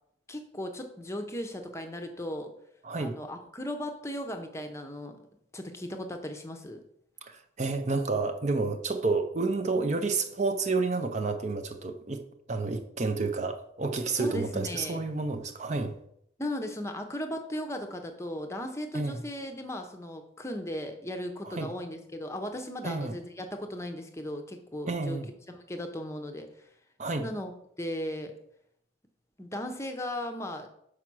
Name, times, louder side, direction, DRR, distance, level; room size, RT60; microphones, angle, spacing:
voice 1, 0.3-2.5 3.0-5.2 5.5-6.8 14.1-15.1 16.4-25.2 25.5-26.7 27.2-27.5 27.8-28.3 29.4-30.7, left 1 dB, 15° left, 0.7 m, -37 dB
voice 2, 2.8-3.1 7.2-12.2 12.5-15.9 18.9-19.2 21.4-21.7 22.8-23.1 24.9-25.3 27.0-27.3, right 3 dB, 35° right, 0.5 m, -30 dB
5.7 x 4.9 x 6.1 m
head